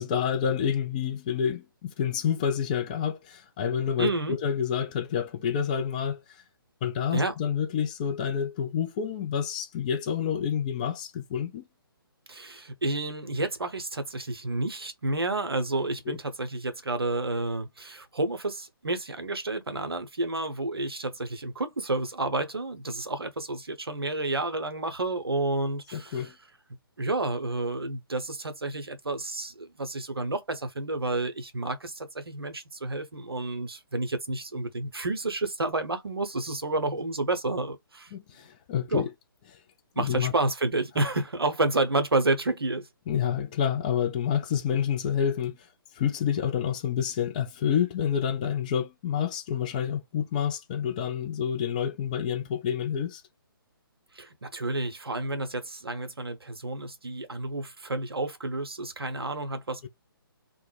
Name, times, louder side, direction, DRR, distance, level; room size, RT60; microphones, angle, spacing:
voice 1, 0.0-6.2 6.8-11.7 16.1-16.2 25.9-26.3 38.1-39.1 40.0-40.3 43.1-45.6 46.0-53.2 59.8-59.9, left 8 dB, 20° left, 0.3 m, -28 dB
voice 2, 4.0-4.4 7.1-7.3 12.3-26.3 27.0-38.1 38.9-39.1 40.0-42.9 54.1-59.9, right 2 dB, 80° right, 0.7 m, -30 dB
2.2 x 2.0 x 3.1 m
figure-of-eight pair, 135°, 12 cm